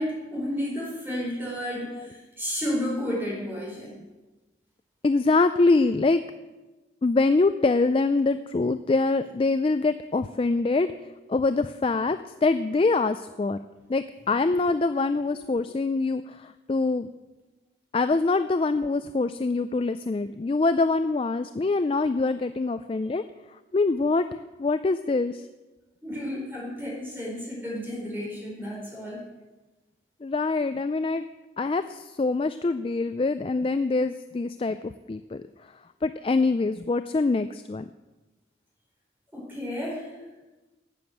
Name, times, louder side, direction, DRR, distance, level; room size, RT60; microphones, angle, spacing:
voice 1, 0.0-4.0 26.0-29.2 39.3-40.1, equal, 10° right, -4 dB, 4.5 m, -32 dB
voice 2, 5.0-6.2 7.0-10.9 11.3-13.6 13.9-17.1 17.9-23.2 23.7-25.5 30.2-31.2 31.6-35.4 36.0-37.9, left 3 dB, 30° left, 11 dB, 0.3 m, -24 dB
12.0 x 7.8 x 8.0 m, 1.2 s
head